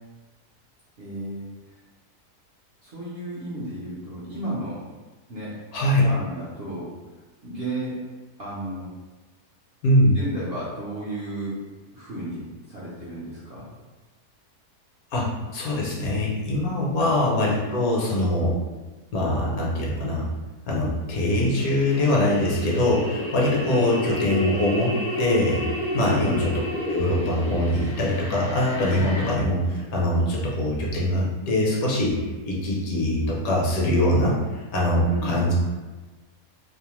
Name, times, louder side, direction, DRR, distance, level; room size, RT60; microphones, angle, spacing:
voice 1, 1.0-1.5 2.8-4.8 5.3-5.5 6.0-6.9 7.4-8.0 8.4-8.9 10.1-11.5 11.9-12.4 12.7-13.7 17.0-17.1 23.7-23.8 25.9-26.4 35.0-35.4, right 1 dB, 55° right, -9 dB, 0.7 m, -33 dB
voice 2, 5.7-6.0 9.8-10.2 15.1-18.6 19.1-20.3 20.7-35.5, left 1 dB, 70° left, -3 dB, 1.0 m, -23 dB
sound 1, 21.5-29.3, left 1 dB, 55° left, 0.7 m, -31 dB
2.7 x 2.1 x 3.0 m, 1.3 s
omnidirectional pair, 1.6 m